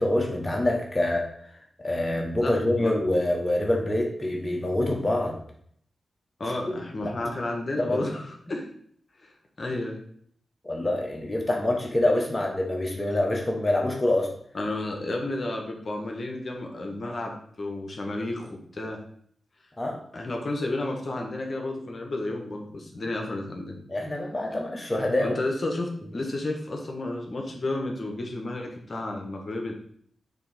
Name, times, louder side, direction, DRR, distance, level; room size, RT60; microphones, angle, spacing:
voice 1, 0.0-5.4 7.0-7.1 7.9-8.0 10.6-14.3 19.8-20.0 23.9-25.3, left 1 dB, 25° left, 1 dB, 1.3 m, -26 dB
voice 2, 6.4-8.7 9.2-9.3 9.6-10.0 14.5-19.0 20.1-23.8 25.2-29.7, left 2 dB, 55° left, 2 dB, 1.4 m, -32 dB
6.8 x 3.1 x 5.0 m, 0.63 s
cardioid pair, 45°, 0 cm